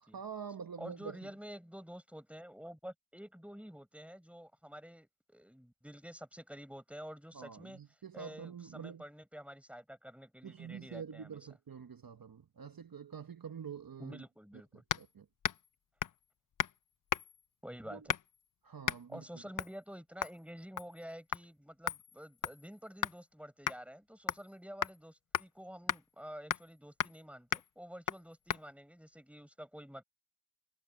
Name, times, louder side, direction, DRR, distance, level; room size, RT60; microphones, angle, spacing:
voice 1, 0.0-1.3 7.3-9.0 10.4-14.2 14.9-15.2 17.9-18.1 18.6-19.4, right 7 dB, 55° right, 1.1 m, -46 dB
voice 2, 0.8-7.8 8.1-11.4 14.0-14.8 17.6-18.1 19.1-30.0, equal, 5° right, 6.3 m, -49 dB
sound 1, 14.9-15.1 15.4-15.7 16.0-16.2 16.6-16.8 17.1-17.4 18.1-18.4 18.8-19.0 19.6-19.8 20.2-20.4 20.8-21.0 21.3-21.4 21.9-23.2 23.7-23.8 24.3-24.5 24.8-25.0 25.3-25.5 25.9-26.0 26.5-26.7 27.0-27.2 27.5-27.7 28.1-28.2 28.5-28.6, left 9 dB, 50° left, 0.5 m, -36 dB
cardioid pair, 45°, 42 cm